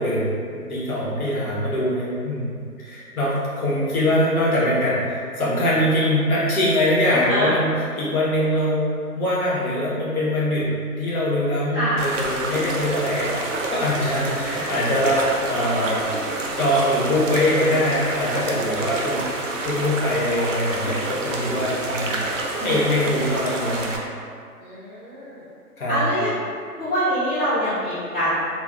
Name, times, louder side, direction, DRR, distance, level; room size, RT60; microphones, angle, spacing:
voice 1, 0.0-16.1 16.6-19.3 19.6-22.2 22.6-23.9 25.8-26.1, left 1 dB, 65° left, -7 dB, 1.1 m, -23 dB
voice 2, 7.0-7.5 11.7-12.0 24.6-25.4 25.9-26.3 26.8-28.3, equal, ahead, -17 dB, 0.6 m, -24 dB
sound 1, 12.0-24.0, right 2 dB, 55° right, 0.5 m, -28 dB
3.4 x 2.1 x 2.4 m, 2.2 s
figure-of-eight pair, 145°, 47 cm